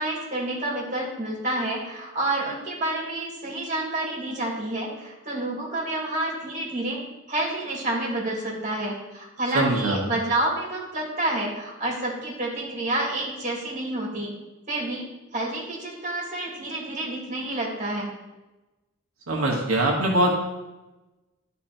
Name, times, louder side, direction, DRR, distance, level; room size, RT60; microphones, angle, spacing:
voice 1, 0.0-7.0 7.3-14.3 14.7-15.1 15.3-18.1, right 1 dB, 35° right, -3 dB, 2.5 m, -29 dB
voice 2, 9.5-10.0 19.3-20.3, right 1 dB, 90° right, -1 dB, 1.3 m, -22 dB
11.0 x 4.1 x 4.4 m, 1.1 s
head